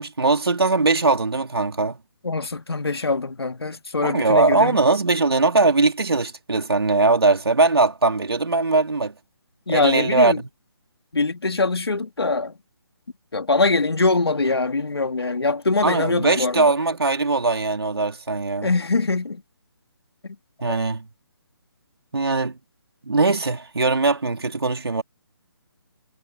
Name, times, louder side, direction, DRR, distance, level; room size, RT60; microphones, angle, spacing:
voice 1, 0.0-2.0 4.0-9.1 9.7-10.5 15.8-18.7 20.6-21.0 22.1-22.6 23.0-25.0, right 3 dB, 85° right, 3.5 m, -20 dB
voice 2, 2.2-4.8 9.7-10.4 11.1-12.5 13.3-16.7 18.6-19.4 20.2-20.4, left 3 dB, 90° left, 2.1 m, -23 dB
figure-of-eight pair, 160°, 13 cm